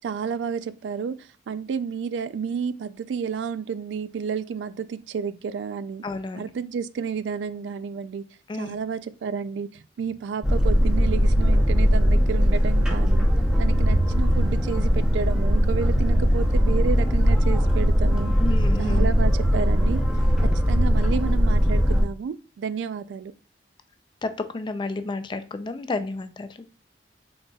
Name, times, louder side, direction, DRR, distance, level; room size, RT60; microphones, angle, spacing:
voice 1, 0.0-1.1 1.5-6.0 6.4-8.2 8.5-13.3 13.6-18.3 18.8-20.0 20.5-23.3, right 6 dB, 75° right, 0.3 m, -31 dB
voice 2, 6.0-6.4 8.5-8.8 18.4-19.1 24.2-26.5, left 3 dB, 25° left, 0.3 m, -31 dB
Boat Water vehicle, 10.4-22.0, equal, 5° right, 0.7 m, -20 dB
4.0 x 3.9 x 2.3 m
head